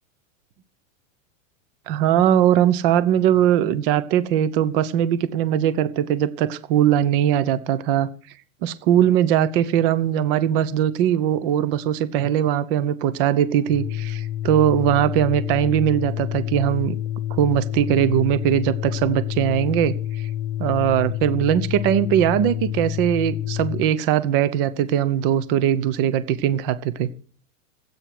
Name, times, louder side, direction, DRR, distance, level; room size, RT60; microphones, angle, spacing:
voice 1, 1.9-8.1 8.6-16.9 17.3-19.9 20.6-27.1, right 10 dB, 45° right, 1.1 m, -20 dB
Organ, 13.6-24.0, left 11 dB, 40° left, 0.7 m, -28 dB
15.0 x 8.8 x 6.1 m
supercardioid pair, 160°, 39 cm